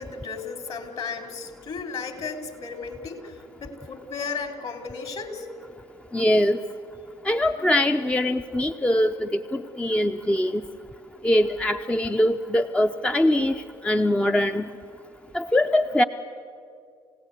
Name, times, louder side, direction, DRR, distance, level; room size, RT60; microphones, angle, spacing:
voice 1, 0.0-5.5, left 5 dB, 50° left, 7 dB, 3.5 m, -34 dB
voice 2, 6.1-6.6 7.2-10.6 11.2-13.5 13.8-14.7 15.3-16.0, left 1 dB, 10° left, 7 dB, 0.7 m, -22 dB
28.5 x 17.0 x 8.1 m, 2.4 s
hypercardioid pair, 60°, 13 cm